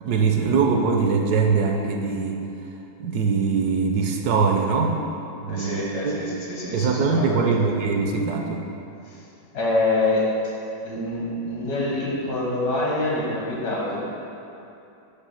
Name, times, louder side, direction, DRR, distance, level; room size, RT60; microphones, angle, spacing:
voice 1, 0.0-2.4 3.0-5.0 5.4-6.1 6.7-8.6, right 5 dB, 70° right, 2 dB, 1.1 m, -22 dB
voice 2, 5.5-7.5 9.1-9.2 9.5-10.2 10.8-14.0, left 2 dB, 70° left, -5 dB, 1.9 m, -26 dB
8.3 x 3.2 x 5.6 m, 2.8 s
omnidirectional pair, 1.8 m